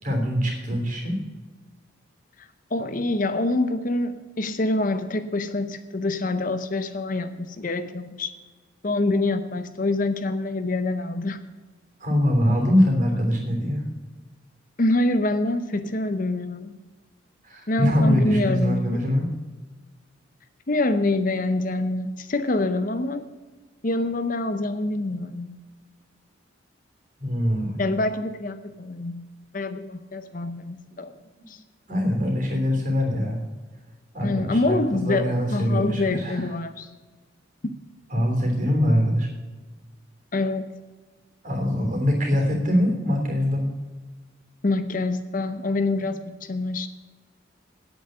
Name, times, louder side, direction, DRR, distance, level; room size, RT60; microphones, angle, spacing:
voice 1, 0.0-1.2 12.0-13.8 17.4-19.3 27.2-27.8 31.9-33.4 34.1-36.4 38.1-39.3 41.4-43.7 46.0-46.1, equal, 40° right, 2 dB, 3.3 m, -23 dB
voice 2, 2.4-8.3 8.8-11.4 14.8-16.8 17.7-19.0 20.7-23.3 23.8-25.5 27.8-29.2 29.5-31.1 31.5-31.6 34.2-36.9 37.6-37.8 40.3-40.7 44.6-46.9, left 2 dB, 40° left, 10 dB, 0.7 m, -26 dB
9.3 x 8.6 x 7.9 m, 1.3 s
head